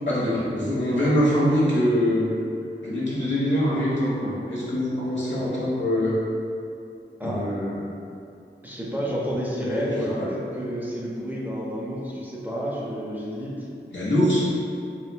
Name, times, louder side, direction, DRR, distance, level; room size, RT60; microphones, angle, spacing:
voice 1, 0.1-2.3 2.8-6.1 7.2-7.8 9.6-9.9 10.2-10.3 13.9-14.5, equal, 70° left, -8 dB, 1.1 m, -23 dB
voice 2, 8.6-13.7, equal, 10° right, -6 dB, 0.5 m, -30 dB
4.1 x 3.0 x 2.2 m, 2.5 s
wide cardioid pair, 80°, 20 cm